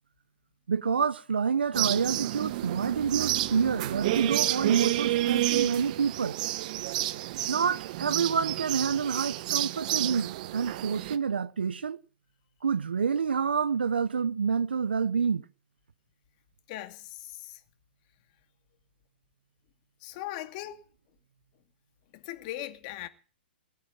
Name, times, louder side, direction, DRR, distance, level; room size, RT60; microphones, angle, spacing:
voice 1, 0.7-6.4 7.5-12.0 12.6-15.4, right 6 dB, 80° right, 1.3 m, -28 dB
sound 1, 1.7-11.2, right 15 dB, 50° right, 1.3 m, -30 dB
voice 2, 16.7-17.6 20.0-20.8 22.1-23.1, left 14 dB, 45° left, 2.6 m, -39 dB
20.0 x 9.4 x 7.7 m
hypercardioid pair, 125°, 6 cm